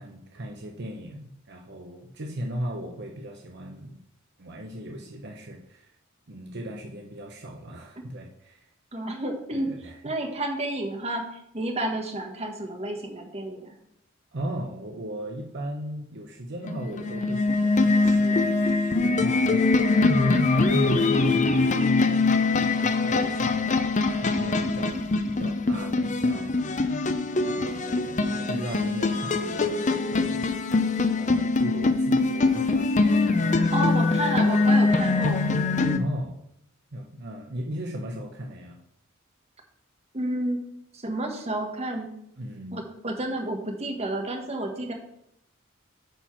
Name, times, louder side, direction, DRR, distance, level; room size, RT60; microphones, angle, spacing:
voice 1, 0.0-4.0 4.4-5.9 6.3-8.6 9.5-10.1 14.3-22.0 22.7-24.9 25.3-26.6 27.4-30.5 31.1-33.7 36.0-36.3 36.9-38.8 42.4-42.8, equal, 55° right, 1 dB, 0.9 m, -37 dB
voice 2, 8.9-9.7 10.0-11.2 11.5-13.7 33.7-35.5 35.8-36.0 40.1-40.6 40.9-42.1 42.7-44.9, right 1 dB, 30° right, 2 dB, 1.4 m, -30 dB
sound 1, 16.7-36.0, left 3 dB, 35° left, 0.6 m, -23 dB
9.2 x 4.4 x 5.8 m, 0.75 s
head